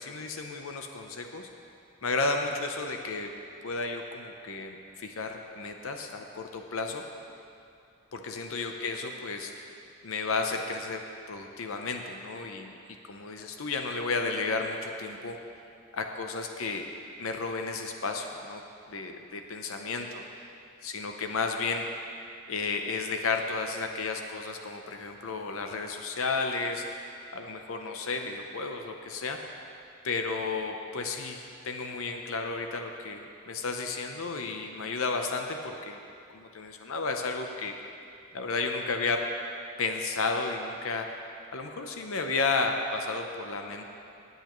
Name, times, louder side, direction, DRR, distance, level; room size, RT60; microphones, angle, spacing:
voice 1, 0.0-1.5 2.0-3.3 3.6-7.0 8.1-9.7 10.0-11.0 11.3-12.7 13.1-15.4 15.9-16.9 17.2-18.6 18.9-20.2 20.8-21.9 22.5-26.9 27.3-29.4 30.0-36.0 36.3-37.7 38.3-39.3 39.8-41.1 41.5-43.8, left 3 dB, 65° left, 4 dB, 0.7 m, -32 dB
19.0 x 8.1 x 3.1 m, 2.5 s
head